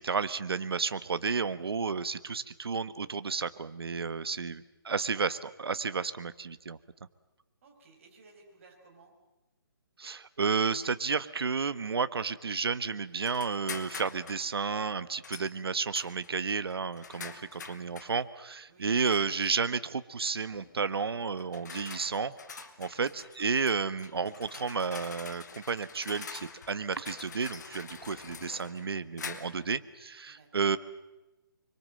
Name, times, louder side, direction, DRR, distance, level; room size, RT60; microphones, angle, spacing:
voice 1, 0.0-6.8 10.0-30.8, right 5 dB, 80° right, 13 dB, 1.4 m, -32 dB
voice 2, 7.6-9.2 18.7-18.9 22.9-23.2 30.3-30.7, right 3 dB, 35° right, 1 dB, 5.8 m, -58 dB
sound 1, 13.2-14.5 15.2-15.5 15.9-18.2 19.0-19.5 20.5-20.8 21.4-29.7, left 5 dB, 50° left, 2.2 m, -45 dB
26.0 x 24.0 x 7.7 m, 1.0 s
hypercardioid pair, 170°, 13 cm